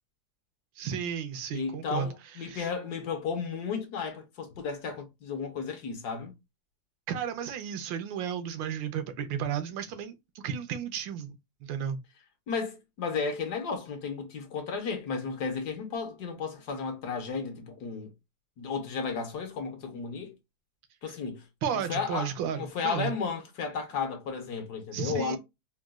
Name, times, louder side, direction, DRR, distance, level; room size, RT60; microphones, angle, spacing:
voice 1, 0.8-2.1 2.4-2.7 7.1-10.2 10.4-11.4 11.6-12.0 21.1-21.2 21.6-23.1 24.9-25.4, right 8 dB, 80° right, 1.3 m, -33 dB
voice 2, 1.5-6.3 12.5-18.1 18.6-20.3 21.0-21.4 21.7-25.4, left 5 dB, 65° left, 1.2 m, -34 dB
3.9 x 2.2 x 2.2 m
omnidirectional pair, 2.0 m